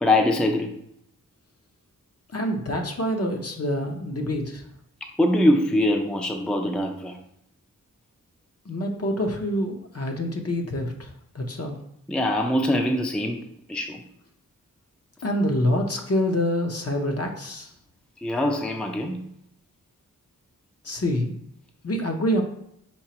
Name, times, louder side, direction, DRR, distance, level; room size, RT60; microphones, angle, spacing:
voice 1, 0.0-0.7 5.0-7.2 12.1-13.4 13.7-14.0 18.2-19.2, left 1 dB, 5° left, 3 dB, 0.4 m, -23 dB
voice 2, 2.3-4.6 8.7-11.8 15.2-17.7 20.8-21.3 21.8-22.4, left 1 dB, 45° left, 2 dB, 0.7 m, -26 dB
4.5 x 4.0 x 2.9 m, 0.74 s
wide cardioid pair, 70°, 34 cm